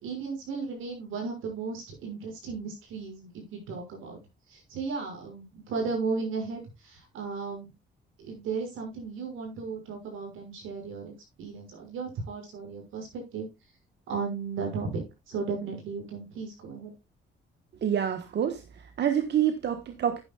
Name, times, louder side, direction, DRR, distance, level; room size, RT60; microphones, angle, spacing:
voice 1, 0.0-4.2 4.5-7.7 8.2-11.1 11.4-13.5 14.1-16.9, right 4 dB, 85° right, 6.0 m, -35 dB
voice 2, 17.8-20.2, right 9 dB, 60° right, 1.3 m, -27 dB
11.0 x 10.5 x 2.3 m
cardioid pair, 90°, 20 cm